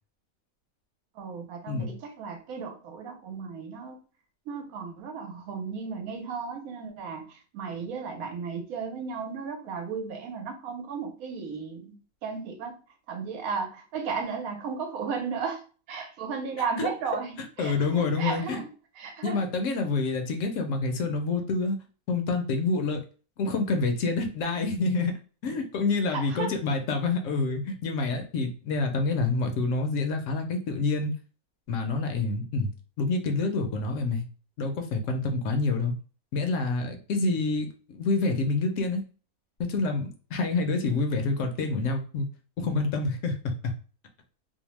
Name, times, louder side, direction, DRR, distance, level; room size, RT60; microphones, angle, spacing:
voice 1, 1.2-4.0 4.5-7.2 7.5-11.9 12.2-12.7 13.1-15.6 15.9-18.7 19.0-19.4 26.1-26.5, right 5 dB, 90° right, 4 dB, 1.1 m, -34 dB
voice 2, 17.6-18.6 19.2-21.8 22.1-23.0 23.4-25.1 25.4-31.1 31.7-32.7 33.0-34.2 34.6-35.9 36.3-39.0 39.7-42.3 42.6-43.7, left 3 dB, 70° left, 5 dB, 0.9 m, -27 dB
2.7 x 2.0 x 3.0 m, 0.38 s
omnidirectional pair, 1.5 m